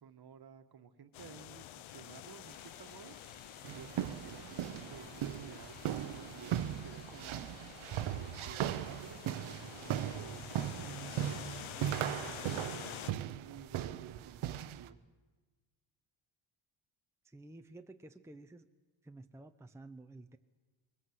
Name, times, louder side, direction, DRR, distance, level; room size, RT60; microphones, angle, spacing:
voice 1, 0.0-3.2 3.7-5.8 6.2-7.5 8.0-11.4 12.2-15.0, right 7 dB, 50° right, 8 dB, 1.5 m, -54 dB
sound 1, 1.1-13.1, left 13 dB, 80° left, 0.7 m, -49 dB
sound 2, 2.4-13.2, left 1 dB, 20° left, 3.1 m, -59 dB
sound 3, 3.6-14.9, right 11 dB, 85° right, 0.9 m, -38 dB
voice 2, 17.2-18.7 19.0-20.4, right 2 dB, 5° right, 6 dB, 0.7 m, -52 dB
22.5 x 21.0 x 7.9 m, 1.3 s
cardioid pair, 115°, 47 cm